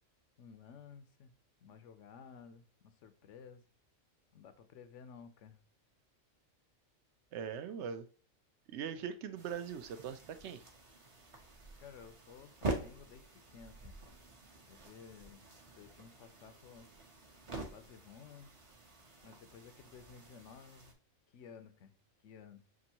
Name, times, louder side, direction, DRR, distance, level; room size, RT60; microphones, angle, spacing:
voice 1, 0.4-3.6 4.3-5.6 11.8-14.0 14.7-15.5 15.8-16.9 17.5-18.5 19.2-21.0 21.3-22.0 22.2-22.7, left 6 dB, 70° left, 10 dB, 0.9 m, -55 dB
voice 2, 7.3-8.1 8.7-10.6, right 7 dB, 65° right, 10 dB, 0.8 m, -41 dB
sound 1, 9.4-20.9, right 2 dB, 35° right, 0.6 m, -46 dB
6.0 x 2.5 x 2.8 m, 0.42 s
omnidirectional pair, 1.4 m